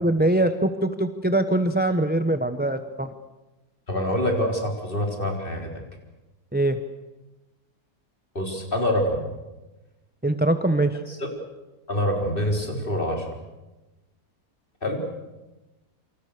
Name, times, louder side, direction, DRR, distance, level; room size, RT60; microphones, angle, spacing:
voice 1, 0.0-3.1 6.5-6.8 10.2-11.0, right 1 dB, 10° right, 9 dB, 0.8 m, -22 dB
voice 2, 3.9-5.7 8.3-9.2 11.1-11.3 11.9-13.2 14.8-15.0, equal, 30° left, 2 dB, 4.5 m, -25 dB
28.0 x 26.0 x 6.7 m, 1.1 s
omnidirectional pair, 1.7 m